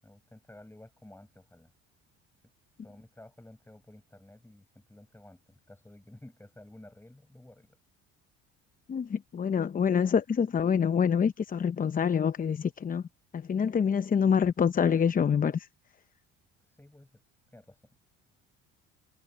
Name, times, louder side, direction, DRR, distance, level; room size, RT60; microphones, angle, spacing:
voice 1, 0.0-1.7 2.8-7.8 16.6-17.2 17.5-17.9, left 1 dB, 5° left, 7.3 m, -53 dB
voice 2, 8.9-13.0 13.3-15.7, left 7 dB, 25° left, 0.7 m, -26 dB
supercardioid pair, 90°, 31 cm